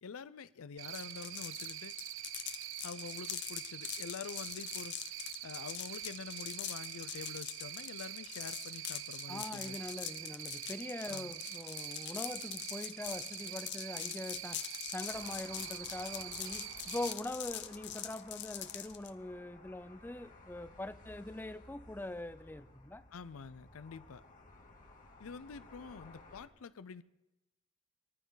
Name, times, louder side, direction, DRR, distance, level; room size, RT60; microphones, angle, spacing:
voice 1, 0.0-1.9 2.8-5.0 5.4-9.8 11.1-11.4 23.1-24.2 25.2-27.0, left 5 dB, 85° left, 0.5 m, -47 dB
Cricket, 0.8-17.1, right 13 dB, 65° right, 0.5 m, -45 dB
sound 1, 0.9-19.1, left 12 dB, 55° left, 0.8 m, -43 dB
voice 2, 9.3-23.0, left 1 dB, 10° left, 0.4 m, -43 dB
sound 2, 15.1-26.5, left 2 dB, 40° left, 2.0 m, -57 dB
21.5 x 14.0 x 4.0 m
head